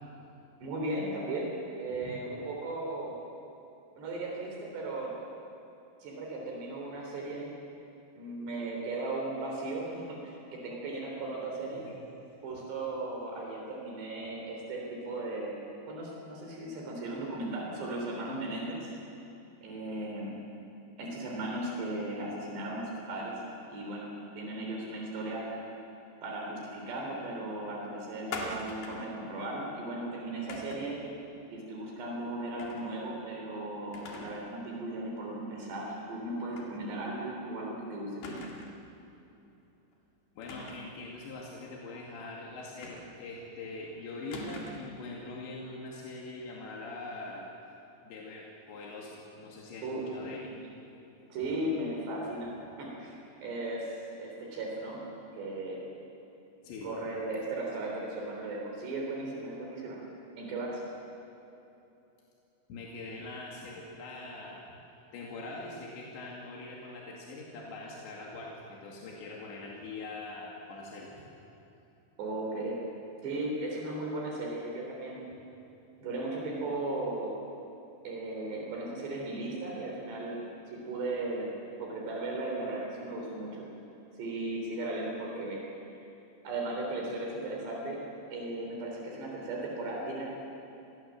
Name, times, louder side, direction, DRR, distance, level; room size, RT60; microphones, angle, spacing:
voice 1, 0.6-3.2 4.0-5.2 6.0-7.5 8.2-11.8 12.4-15.6 15.9-18.9 19.6-20.3 21.0-23.4 23.7-25.6 26.2-31.0 31.5-38.4 49.8-50.1 51.3-55.0 55.3-55.9 56.8-60.0 60.4-60.8 72.2-72.8 73.2-75.2 76.0-77.4 78.0-81.5 81.8-83.7 84.2-85.6 86.4-88.0 88.3-90.3, right 2 dB, 75° right, -1 dB, 5.7 m, -36 dB
Bucket dropping, 28.3-29.1 30.5-31.0 32.6-32.9 33.3-33.4 33.9-34.5 34.8-34.9 36.5-36.7 37.1-37.2 38.2-38.8 40.4-41.0 42.8-43.4 44.3-45.0, left 2 dB, 65° left, 4.3 m, -41 dB
voice 2, 40.4-47.5 48.0-50.6 56.6-57.0 62.7-64.6 65.1-71.3, left 2 dB, 85° left, -2 dB, 4.7 m, -43 dB
29.5 x 21.0 x 7.6 m, 3.0 s
omnidirectional pair, 5.0 m